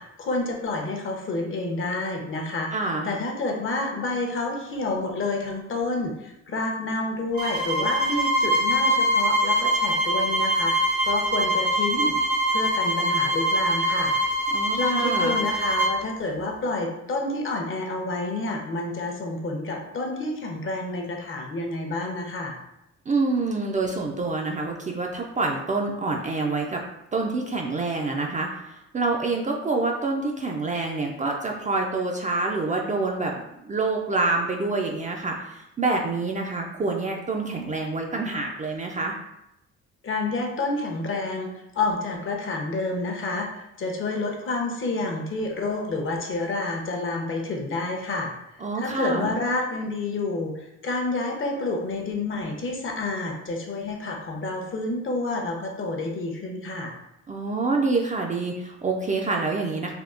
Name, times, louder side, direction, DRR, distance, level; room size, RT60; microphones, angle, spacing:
voice 1, 0.0-2.7 3.0-12.2 12.5-14.1 14.7-22.5 40.0-48.3 48.8-56.9, left 2 dB, 45° left, 2 dB, 0.7 m, -29 dB
voice 2, 2.7-3.1 14.5-15.3 23.1-26.8 27.1-39.2 48.6-49.3 57.3-59.9, right 3 dB, 25° right, 0 dB, 0.3 m, -27 dB
sound 1, 7.3-16.0, equal, 85° right, 1.4 m, -23 dB
3.5 x 2.3 x 2.4 m, 0.86 s
cardioid pair, 90°, 30 cm